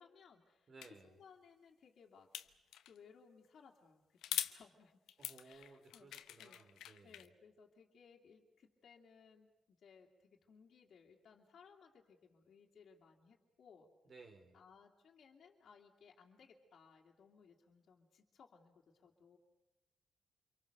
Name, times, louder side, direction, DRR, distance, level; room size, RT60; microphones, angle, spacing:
voice 1, 0.0-0.7 1.0-5.0 5.4-6.1 6.4-6.6 7.0-13.9 14.5-19.4, left 6 dB, 65° left, -2 dB, 2.7 m, -63 dB
voice 2, 0.7-1.2 5.2-7.3 14.0-14.6, right 3 dB, 50° right, 3 dB, 3.9 m, -59 dB
sound 1, 0.8-0.9 2.3-3.0 4.2-4.6 5.1-7.3, left 11 dB, 85° left, 1.0 m, -43 dB
27.5 x 24.0 x 6.8 m, 1.0 s
cardioid pair, 75°, 0 cm